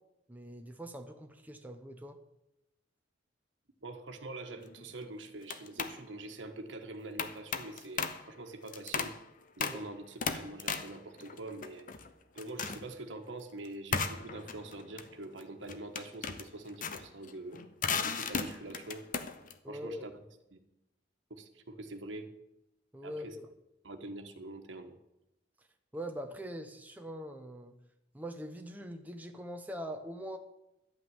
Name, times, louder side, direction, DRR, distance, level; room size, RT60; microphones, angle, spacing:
voice 1, 0.3-2.2 9.6-9.8 19.6-20.0 22.9-23.5 25.9-27.8 28.1-30.4, equal, 10° right, 4 dB, 1.0 m, -42 dB
voice 2, 3.8-9.1 9.6-11.9 12.3-17.6 18.0-19.1 19.7-20.1 20.5-20.6 21.3-22.3 23.0-23.3 23.8-25.0, right 2 dB, 85° right, 6 dB, 1.4 m, -45 dB
sound 1, 4.6-4.9 5.4-6.0 7.2-8.3 8.7-9.2 9.6-9.9 10.2-12.1 12.4-12.9 13.9-19.5, left 5 dB, 45° left, 0.8 m, -36 dB
12.0 x 5.8 x 9.3 m, 0.88 s
head